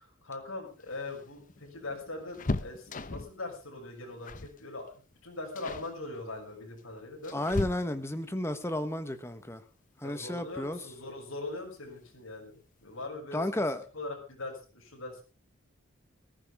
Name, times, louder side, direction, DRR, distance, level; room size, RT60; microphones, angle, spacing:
voice 1, 0.0-7.5 10.0-13.4 13.9-15.2, left 2 dB, 75° left, 6.4 m, -41 dB
sound 1, 0.7-3.4 4.2-4.6 4.9-5.1 5.6-5.9 6.8-8.2 10.0-10.1 10.5-10.6 11.7-12.2 12.5-12.6 12.9-13.1, left 2 dB, 40° left, 0.8 m, -37 dB
voice 2, 7.3-9.6 10.0-10.8 13.3-13.8, left 1 dB, 10° left, 1.1 m, -32 dB
19.5 x 14.5 x 3.5 m
head